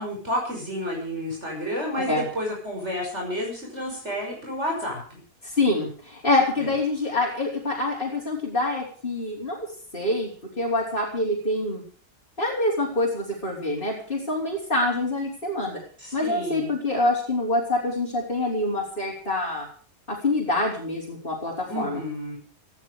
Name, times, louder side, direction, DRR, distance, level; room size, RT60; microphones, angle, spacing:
voice 1, 0.0-5.2 6.6-6.7 16.0-16.7 21.7-22.4, equal, 45° right, -1 dB, 6.3 m, -30 dB
voice 2, 5.4-9.7 9.9-10.3 10.6-11.8 12.4-15.8 16.1-19.7 20.1-22.0, left 2 dB, 30° left, -4 dB, 4.7 m, -26 dB
18.0 x 15.5 x 5.1 m, 0.43 s
omnidirectional pair, 1.7 m